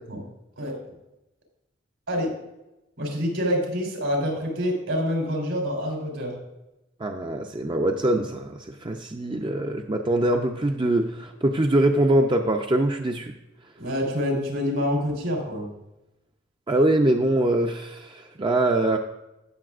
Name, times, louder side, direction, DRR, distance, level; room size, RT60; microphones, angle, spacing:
voice 1, 3.0-6.3 13.8-15.7, equal, 80° right, 0 dB, 3.7 m, -26 dB
voice 2, 7.0-13.3 16.7-19.0, right 1 dB, 25° right, 3 dB, 0.5 m, -23 dB
17.0 x 6.8 x 2.5 m, 0.94 s
head